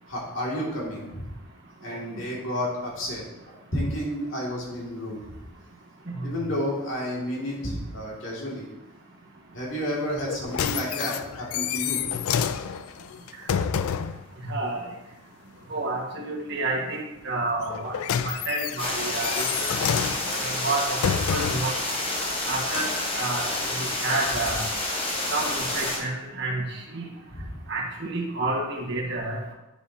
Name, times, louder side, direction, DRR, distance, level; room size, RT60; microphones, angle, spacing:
voice 1, 0.1-1.3 1.8-5.3 6.2-8.7 9.5-12.0 27.3-27.5, equal, 65° left, -4 dB, 2.4 m, -31 dB
sound 1, 10.2-14.2 17.6-21.8 22.5-22.6, left 7 dB, 85° left, 0.4 m, -29 dB
voice 2, 14.4-14.8 15.7-17.9 18.2-19.7 20.4-21.0 21.3-21.7 22.5-22.9 23.1-23.5 23.7-24.6 25.3-26.6 26.9-27.1 27.7-29.5, right 2 dB, 55° right, -2 dB, 1.6 m, -29 dB
sound 2, 18.8-26.0, left 1 dB, 25° left, 1.3 m, -29 dB
9.4 x 6.9 x 2.8 m, 0.97 s
head